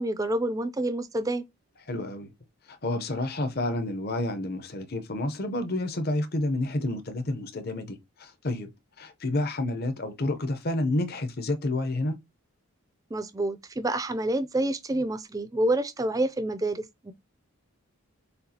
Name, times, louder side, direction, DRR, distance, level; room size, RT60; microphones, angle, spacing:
voice 1, 0.0-1.4 13.1-17.1, right 1 dB, 15° right, 0.3 m, -28 dB
voice 2, 1.9-2.3 2.8-8.7 9.0-12.2, left 2 dB, 45° left, 0.7 m, -29 dB
6.6 x 2.4 x 2.8 m
head